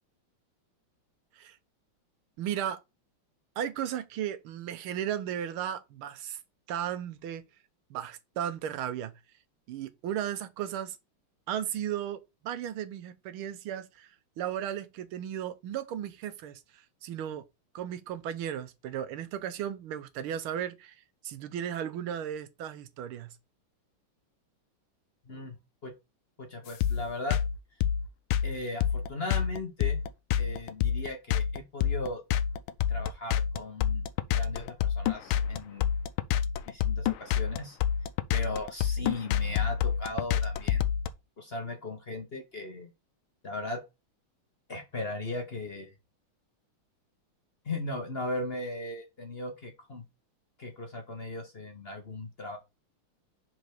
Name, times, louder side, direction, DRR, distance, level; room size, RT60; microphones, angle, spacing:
voice 1, 2.4-2.8 3.6-6.4 6.7-7.4 7.9-9.1 9.7-11.0 11.5-17.4 17.7-23.4, right 10 dB, 85° right, 1.7 m, -35 dB
voice 2, 25.3-25.6 25.8-25.9 26.4-27.4 28.4-30.0 30.3-32.2 32.9-35.9 36.7-37.8 38.3-40.8 41.4-42.9 43.4-43.8 44.7-45.9 47.6-50.0 50.6-52.6, left 2 dB, 40° left, 0.9 m, -37 dB
sound 1, 26.8-41.1, left 9 dB, 80° left, 1.5 m, -27 dB
5.2 x 4.5 x 5.9 m
omnidirectional pair, 2.3 m